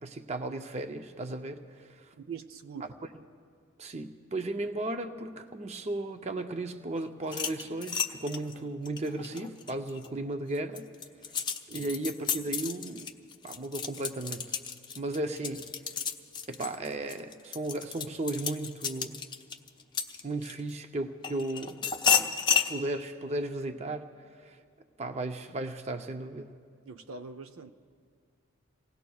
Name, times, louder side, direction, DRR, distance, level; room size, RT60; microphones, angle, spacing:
voice 1, 0.0-2.1 2.8-2.9 3.8-10.9 11.7-13.2 13.4-14.6 15.0-15.7 16.5-19.2 20.2-21.9 22.2-24.1 24.4-24.6 25.0-26.5, right 2 dB, 30° right, 0.6 m, -35 dB
voice 2, 2.2-2.9 11.7-11.9 26.8-27.7, right 5 dB, 90° right, 0.7 m, -43 dB
sound 1, 7.2-10.1 10.5-20.7 21.2-22.7, left 7 dB, 20° left, 0.5 m, -32 dB
29.0 x 18.0 x 2.3 m
head